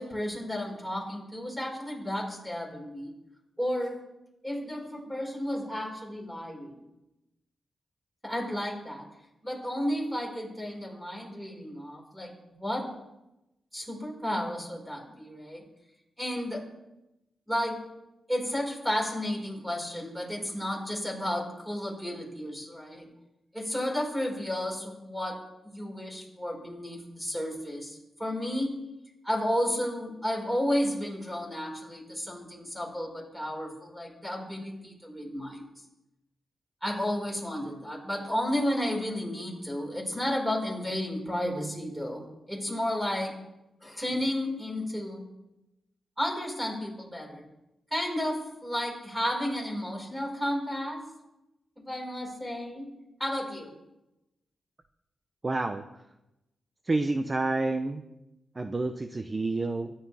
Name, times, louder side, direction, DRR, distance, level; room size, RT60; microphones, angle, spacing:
voice 1, 0.0-3.1 3.6-4.0 4.4-6.8 8.2-9.1 9.4-12.9 13.7-15.6 16.2-16.7 17.5-17.8 18.3-23.1 23.5-28.8 29.2-35.6 36.8-43.3 43.8-45.2 46.2-47.4 47.9-51.1 51.8-52.9 53.2-53.7, left 1 dB, 5° right, -1 dB, 5.0 m, -32 dB
voice 2, 55.4-55.8 56.8-58.0 58.6-59.9, right 2 dB, 25° right, 8 dB, 0.7 m, -29 dB
23.5 x 11.5 x 3.4 m, 0.94 s
wide cardioid pair, 120°, 0 cm